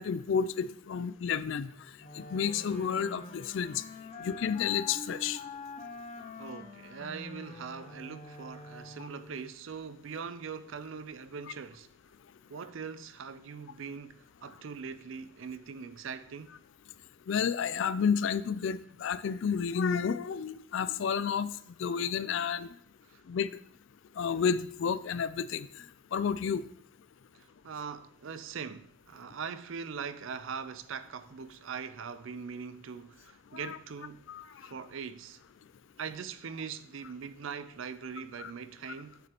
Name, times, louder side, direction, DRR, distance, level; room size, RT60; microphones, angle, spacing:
voice 1, 0.0-1.7 2.1-3.8 4.2-5.4 9.0-9.1 17.3-22.7 23.3-23.5 24.2-25.8 26.1-26.6 33.5-33.8 34.3-34.4 38.4-38.5, left 6 dB, 60° left, 0.3 m, -31 dB
Wind instrument woodwind instrument, 2.0-9.5, left 3 dB, 35° left, 0.9 m, -45 dB
voice 2, 6.3-11.9 12.5-16.5 23.1-23.2 27.3-34.3 34.6-35.4 36.0-39.2, right 6 dB, 65° right, 0.5 m, -41 dB
8.3 x 6.8 x 2.9 m
head